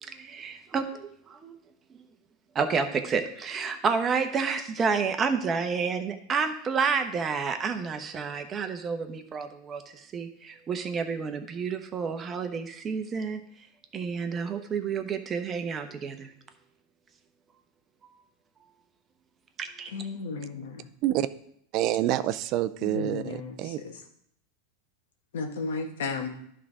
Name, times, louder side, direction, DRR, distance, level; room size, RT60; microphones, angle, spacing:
voice 1, 0.0-1.5 2.5-13.4 13.9-16.3 19.6-19.9, right 5 dB, 25° right, 7 dB, 0.9 m, -30 dB
voice 2, 19.9-20.8 22.8-23.5 25.3-26.3, left 4 dB, 85° left, 3 dB, 1.3 m, -33 dB
voice 3, 21.7-23.8, right 13 dB, 50° right, 13 dB, 0.4 m, -27 dB
11.0 x 3.7 x 4.9 m, 0.68 s
hypercardioid pair, 115°, 0 cm